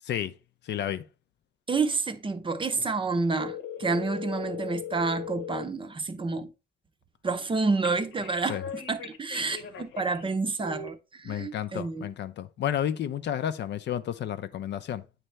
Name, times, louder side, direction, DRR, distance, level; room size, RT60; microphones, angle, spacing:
voice 1, 0.6-1.0 8.5-8.6 11.2-15.0, left 10 dB, 60° left, 0.5 m, -31 dB
voice 2, 1.7-6.5 7.2-12.1, right 3 dB, 25° right, 0.6 m, -29 dB
sound 1, 3.4-5.7 7.8-10.2 10.6-10.9, left 8 dB, 75° left, 0.9 m, -38 dB
9.0 x 3.3 x 3.2 m
cardioid pair, 90°, 20 cm